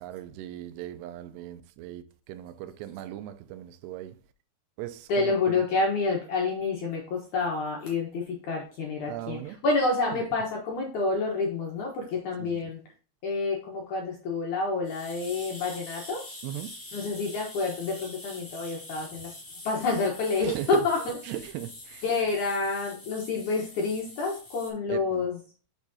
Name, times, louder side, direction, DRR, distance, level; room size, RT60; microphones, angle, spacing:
voice 1, 0.0-2.0 2.3-4.1 4.8-5.6 9.1-9.6 12.4-12.6 16.4-16.7 20.4-20.8 21.3-22.0 24.9-25.2, right 13 dB, 85° right, 2.4 m, -38 dB
voice 2, 5.1-12.8 13.2-16.2 16.9-19.3 19.7-21.2 22.0-25.4, left 3 dB, 75° left, 1.8 m, -28 dB
sound 1, 14.8-24.7, left 1 dB, 10° left, 1.6 m, -45 dB
6.9 x 6.0 x 2.7 m
omnidirectional pair, 5.3 m